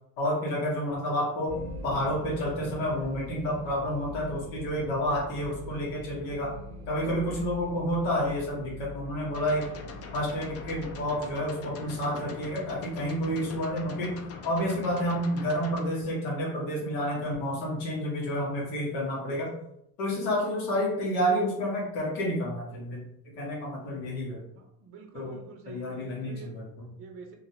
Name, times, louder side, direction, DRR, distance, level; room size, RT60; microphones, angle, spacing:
voice 1, 0.2-6.5 6.9-9.7 10.1-14.1 14.4-19.5 20.0-23.0 23.3-24.4 25.1-25.4 25.7-26.9, equal, 85° left, -3 dB, 1.2 m, -30 dB
sound 1, 1.5-11.5, equal, 90° right, 0.7 m, -43 dB
sound 2, 9.3-15.8, left 4 dB, 40° left, 0.5 m, -43 dB
voice 2, 24.5-26.5 27.0-27.4, right 5 dB, 35° right, 3 dB, 0.6 m, -47 dB
2.8 x 2.5 x 2.7 m, 0.76 s
supercardioid pair, 90°, 40 cm